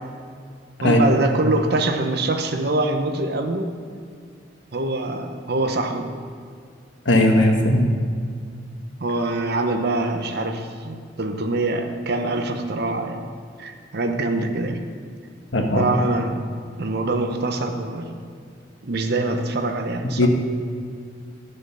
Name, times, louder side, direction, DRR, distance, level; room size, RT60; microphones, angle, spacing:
voice 1, 0.8-3.8 4.7-6.1 9.0-13.2 13.6-14.8 15.8-16.5 16.8-18.2 18.8-20.3, right 2 dB, 60° right, 6 dB, 0.9 m, -24 dB
voice 2, 7.0-7.9 15.5-15.9 20.2-20.3, left 1 dB, 75° left, 2 dB, 1.5 m, -17 dB
12.5 x 6.7 x 5.7 m, 2.2 s
head